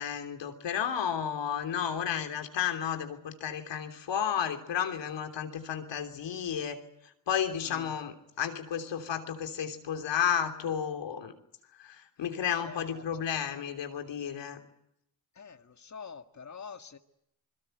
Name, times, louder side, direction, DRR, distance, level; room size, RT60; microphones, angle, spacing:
voice 1, 0.0-11.4 11.8-14.6, left 8 dB, 80° left, 3.2 m, -32 dB
voice 2, 12.7-13.3 15.3-17.0, left 5 dB, 40° left, 1.9 m, -46 dB
27.0 x 22.0 x 8.0 m
cardioid pair, 55°, 43 cm